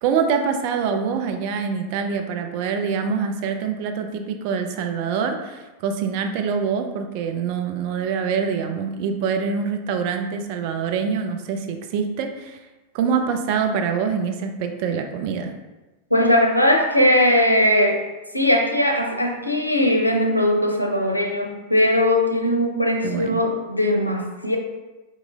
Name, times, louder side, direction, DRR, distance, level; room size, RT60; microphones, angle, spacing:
voice 1, 0.0-12.6 12.9-15.5 23.0-23.4, right 6 dB, 45° right, 5 dB, 0.4 m, -25 dB
voice 2, 16.1-18.0 18.3-24.6, left 1 dB, 85° left, 2 dB, 0.5 m, -19 dB
4.8 x 2.9 x 2.3 m, 1.1 s
figure-of-eight pair, 90°, 0 cm